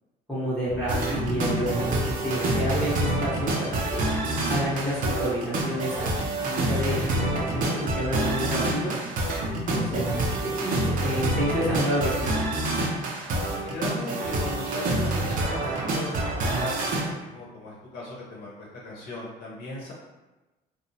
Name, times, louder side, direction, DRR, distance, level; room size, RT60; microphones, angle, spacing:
voice 1, 0.3-4.1 4.5-9.0 9.7-12.3, equal, 5° left, -12 dB, 0.7 m, -30 dB
sound 1, 0.7-15.1, equal, 55° left, 0.4 m, -43 dB
sound 2, 0.9-17.0, right 2 dB, 50° right, 0.5 m, -27 dB
voice 2, 13.6-19.9, left 2 dB, 75° left, -5 dB, 0.8 m, -37 dB
2.9 x 2.0 x 2.7 m, 1.1 s
cardioid pair, 135°, 17 cm